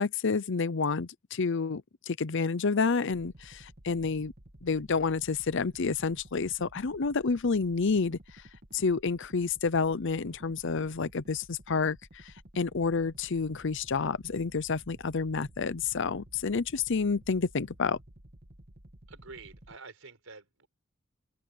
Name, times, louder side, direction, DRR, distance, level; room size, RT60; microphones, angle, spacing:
voice 1, 0.0-4.3 4.6-8.4 8.7-18.0, left 4 dB, 65° left, 0.7 m, -29 dB
sound 1, 3.1-19.8, right 1 dB, 50° right, 2.6 m, -53 dB
voice 2, 19.1-20.7, right 4 dB, 80° right, 4.8 m, -48 dB
head